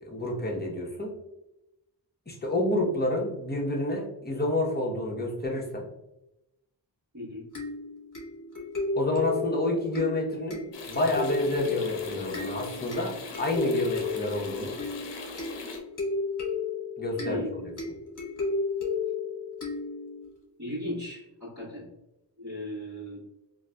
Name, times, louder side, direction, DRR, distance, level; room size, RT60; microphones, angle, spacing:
voice 1, 0.0-1.1 2.3-5.8 9.0-14.7 17.0-17.7, left 1 dB, 25° left, -2 dB, 0.9 m, -29 dB
voice 2, 7.1-7.5 17.2-17.5 20.6-21.9 22.4-23.3, left 1 dB, 40° right, -8 dB, 1.4 m, -37 dB
sound 1, 7.5-20.3, left 4 dB, 45° left, 1.2 m, -33 dB
sound 2, 10.7-15.8, left 3 dB, 90° left, 0.7 m, -41 dB
3.7 x 2.8 x 2.2 m, 0.92 s
wide cardioid pair, 75°, 42 cm